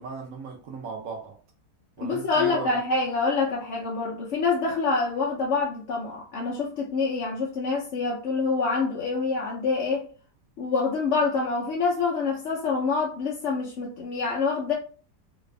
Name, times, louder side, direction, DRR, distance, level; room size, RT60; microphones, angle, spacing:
voice 1, 0.0-1.4 2.0-2.8, right 4 dB, 60° right, 1.1 m, -37 dB
voice 2, 2.0-10.1 10.6-14.7, left 4 dB, 60° left, 0.8 m, -26 dB
3.3 x 2.5 x 3.2 m
omnidirectional pair, 1.8 m